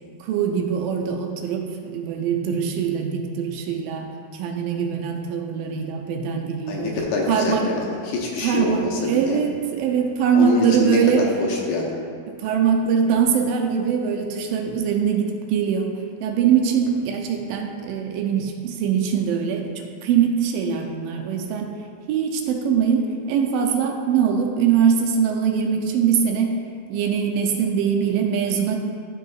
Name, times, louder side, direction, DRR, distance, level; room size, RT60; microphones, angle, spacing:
voice 1, 0.2-6.9 7.3-7.7 8.4-11.3 12.3-15.9 16.2-21.7 22.1-26.6 26.9-28.8, right 7 dB, 80° right, 2 dB, 2.2 m, -22 dB
voice 2, 6.7-9.4 10.3-12.0, left 3 dB, 80° left, -2 dB, 2.8 m, -25 dB
12.5 x 5.4 x 2.4 m, 2.3 s
omnidirectional pair, 4.2 m